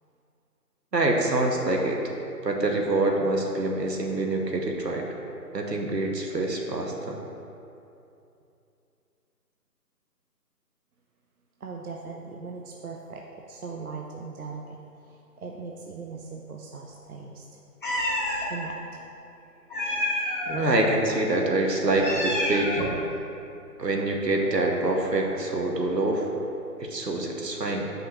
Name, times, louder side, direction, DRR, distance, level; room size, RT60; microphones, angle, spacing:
voice 1, 0.9-2.0 2.4-5.0 5.5-7.2 20.5-22.9 23.8-26.3 26.8-27.9, right 2 dB, 80° right, 1 dB, 1.0 m, -25 dB
voice 2, 11.6-14.8 15.0-17.5 18.5-19.0, right 4 dB, 65° right, 0 dB, 0.6 m, -39 dB
Meow, 17.8-18.5 19.7-20.6 21.8-23.0, left 1 dB, 30° left, 1.0 m, -28 dB
7.6 x 5.5 x 2.8 m, 2.7 s
figure-of-eight pair, 150°, 49 cm